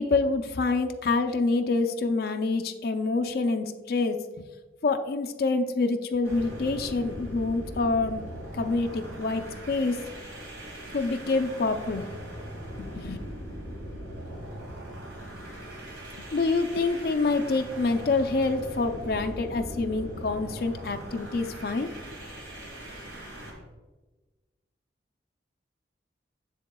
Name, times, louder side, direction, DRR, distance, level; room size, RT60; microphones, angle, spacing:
voice 1, 0.0-4.5 4.8-8.2 8.5-10.0 10.9-12.1 12.8-13.2 16.3-21.9, left 3 dB, 55° left, 6 dB, 0.4 m, -27 dB
sound 1, 6.2-23.6, equal, 70° right, 2.1 m, -40 dB
7.0 x 7.0 x 2.2 m, 1.2 s
head